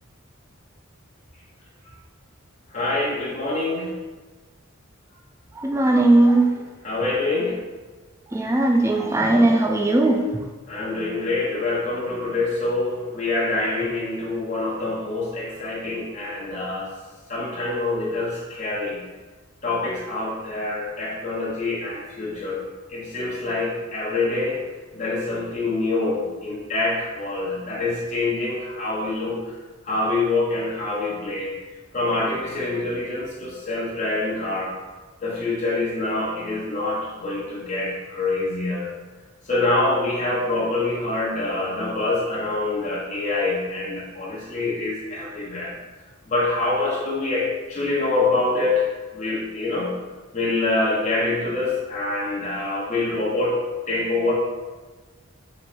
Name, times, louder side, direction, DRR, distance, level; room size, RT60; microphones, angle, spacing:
voice 1, 2.7-4.0 6.8-7.6 10.7-16.9 17.3-19.0 19.6-22.6 22.9-24.6 24.9-29.5 29.8-31.5 31.9-34.7 35.2-38.9 39.5-45.8 46.3-48.9 49.1-50.0 50.3-53.6 53.9-54.3, left 2 dB, 35° left, -6 dB, 0.8 m, -25 dB
voice 2, 5.6-6.5 8.3-10.2, right 2 dB, 15° right, 2 dB, 0.3 m, -18 dB
3.1 x 3.1 x 4.4 m, 1.3 s
head